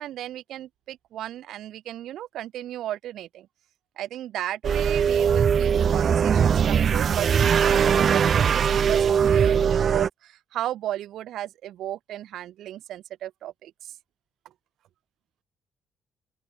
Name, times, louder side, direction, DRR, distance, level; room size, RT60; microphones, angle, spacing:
voice 1, 0.0-3.5 4.0-13.9, right 12 dB, 75° right, 1.3 m, -35 dB
sound 1, 4.6-10.1, right 7 dB, 55° right, 0.7 m, -20 dB
open air
supercardioid pair, 60°, 0 cm